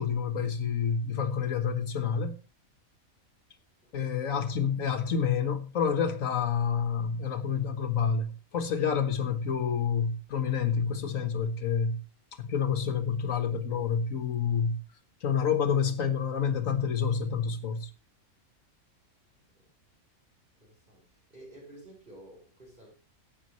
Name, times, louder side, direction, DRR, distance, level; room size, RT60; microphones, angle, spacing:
voice 1, 0.0-2.3 3.9-12.0 12.4-14.8 15.2-17.9, left 7 dB, 70° left, 1.7 m, -28 dB
voice 2, 4.2-4.6 19.5-19.7 20.6-22.9, right 1 dB, 35° right, 4.8 m, -52 dB
15.0 x 9.5 x 3.1 m
omnidirectional pair, 1.4 m